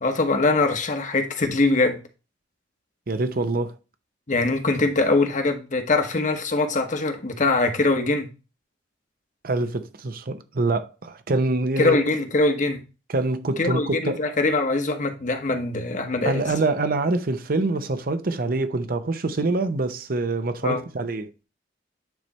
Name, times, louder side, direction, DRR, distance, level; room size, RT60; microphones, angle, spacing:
voice 1, 0.0-2.0 4.3-8.3 11.8-12.8 13.6-16.5 20.6-20.8, left 3 dB, 45° left, 1.1 m, -22 dB
voice 2, 3.1-3.7 9.4-12.0 13.1-14.2 16.2-21.3, right 2 dB, 55° right, 0.7 m, -25 dB
9.4 x 3.3 x 4.1 m
head